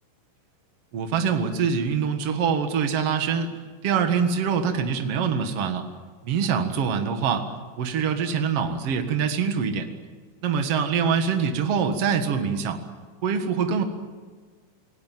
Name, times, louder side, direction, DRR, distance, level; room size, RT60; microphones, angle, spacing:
voice 1, 0.9-3.5 3.8-5.9 6.2-7.5 7.8-9.9 10.4-12.8 13.2-13.8, right 6 dB, 80° right, 6 dB, 1.3 m, -24 dB
28.5 x 18.0 x 9.2 m, 1.5 s
omnidirectional pair, 5.6 m